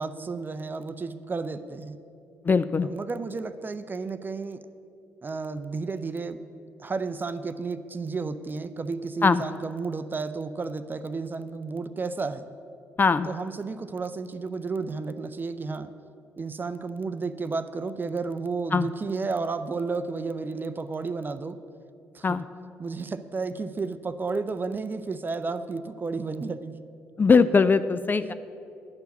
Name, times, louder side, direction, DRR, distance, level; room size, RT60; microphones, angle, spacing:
voice 1, 0.0-2.0 2.8-4.6 5.2-6.4 6.8-12.4 13.3-15.9 16.4-21.6 22.1-22.4 22.8-26.8, right 4 dB, 30° right, 11 dB, 0.5 m, -32 dB
voice 2, 2.4-2.9 9.2-9.4 13.0-13.3 18.7-18.9 22.2-22.4 27.2-28.3, left 5 dB, 30° left, 13 dB, 0.3 m, -20 dB
10.5 x 4.6 x 6.9 m, 2.6 s
hypercardioid pair, 50°, 7 cm